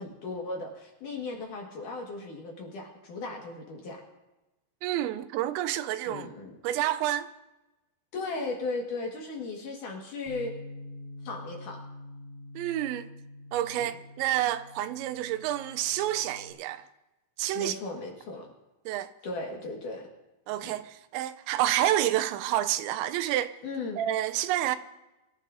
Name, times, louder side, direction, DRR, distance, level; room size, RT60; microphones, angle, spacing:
voice 1, 0.0-4.0 6.0-6.6 8.1-10.5 11.2-11.8 13.8-13.9 17.5-18.5 19.2-20.1 20.6-20.7 23.6-24.0, left 3 dB, 55° left, 2.7 m, -36 dB
voice 2, 4.8-6.3 6.6-7.3 12.6-13.1 13.5-16.9 17.4-17.7 18.9-19.1 20.5-23.5 24.0-24.8, right 13 dB, 85° right, 2.9 m, -29 dB
Bass guitar, 10.3-16.5, left 2 dB, 55° right, 2.8 m, -46 dB
24.5 x 14.5 x 2.6 m
omnidirectional pair, 5.2 m